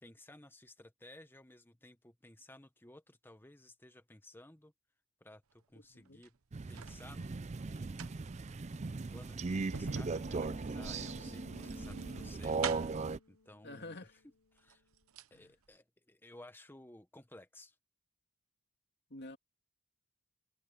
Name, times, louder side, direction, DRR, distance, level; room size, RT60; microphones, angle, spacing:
voice 1, 0.0-4.7 5.2-6.4 6.7-8.1 8.9-12.6 12.9-14.0 14.5-14.8 15.3-17.8, left 1 dB, 10° left, 1.2 m, -57 dB
voice 2, 5.7-6.2 13.6-14.2 15.3-15.5 19.1-19.4, left 2 dB, 50° left, 2.7 m, -49 dB
sound 1, 6.0-7.0 7.7-13.1 14.1-14.2 14.6-15.4 15.7-15.8, right 6 dB, 75° right, 0.9 m, -45 dB
Crow, 6.5-13.2, right 4 dB, 30° right, 0.4 m, -38 dB
sound 2, 9.3-14.8, left 3 dB, 70° left, 1.1 m, -57 dB
head